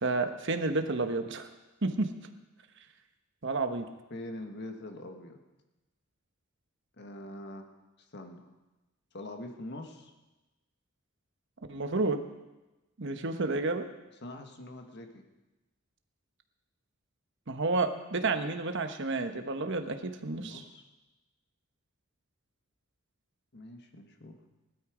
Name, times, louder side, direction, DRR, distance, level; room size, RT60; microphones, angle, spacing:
voice 1, 0.0-1.5 1.8-2.1 3.4-3.9 11.7-12.2 13.0-13.9 17.5-20.6, right 3 dB, 60° right, 7 dB, 1.1 m, -30 dB
voice 2, 4.1-5.4 7.0-7.7 8.1-8.6 9.1-10.1 14.2-15.2 20.3-20.9 23.5-24.4, left 1 dB, 55° left, 5 dB, 1.6 m, -44 dB
17.0 x 12.5 x 5.0 m, 1.1 s
head